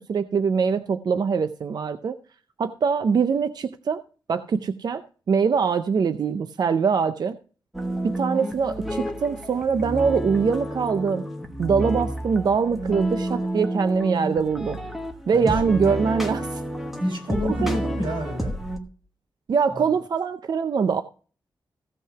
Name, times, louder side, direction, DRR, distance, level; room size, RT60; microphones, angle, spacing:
voice 1, 0.0-2.1 2.6-4.0 4.3-5.0 5.3-7.4 8.0-11.2 11.6-14.8 15.3-16.6 17.4-17.8 19.5-21.0, right 5 dB, 55° right, 11 dB, 0.4 m, -23 dB
sound 1, 7.7-18.8, right 1 dB, 5° right, 1.2 m, -30 dB
voice 2, 17.0-18.6 19.7-19.8, equal, 90° right, 0 dB, 5.7 m, -28 dB
15.5 x 5.6 x 5.7 m, 0.41 s
wide cardioid pair, 180°, 8 cm